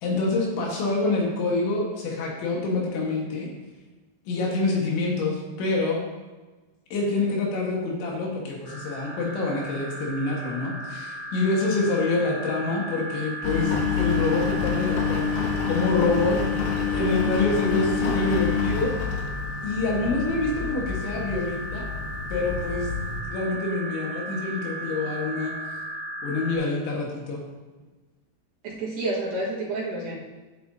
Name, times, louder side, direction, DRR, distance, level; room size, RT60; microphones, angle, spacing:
voice 1, 0.0-3.5 4.3-6.0 6.9-15.3 15.7-16.4 16.9-19.0 19.6-21.9 22.3-22.9 23.2-25.5 26.2-27.4, left 3 dB, 70° left, -2 dB, 3.7 m, -26 dB
sound 1, 8.6-26.5, right 1 dB, 15° left, 1.7 m, -36 dB
Engine, 13.4-23.2, left 6 dB, 90° left, 2.1 m, -27 dB
voice 2, 28.6-30.2, right 2 dB, 65° right, -5 dB, 3.1 m, -29 dB
12.5 x 8.8 x 2.8 m, 1.2 s
omnidirectional pair, 5.8 m